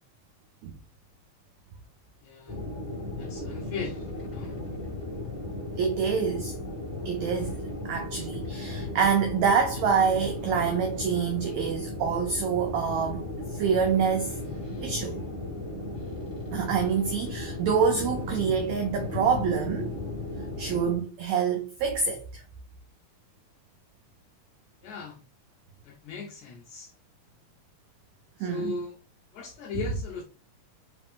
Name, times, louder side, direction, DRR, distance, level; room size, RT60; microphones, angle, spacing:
voice 1, 2.2-2.6 3.2-4.6 24.8-25.2 25.8-26.9 28.4-29.0 29.3-30.2, left 4 dB, 80° left, 1.7 m, -38 dB
sound 1, 2.5-21.0, left 2 dB, 15° left, 0.9 m, -35 dB
voice 2, 5.8-6.5 7.0-13.2 13.5-14.4 14.8-15.2 16.5-19.9 20.6-22.4 28.4-28.7, right 6 dB, 90° right, 1.6 m, -26 dB
5.0 x 2.9 x 3.6 m
omnidirectional pair, 4.0 m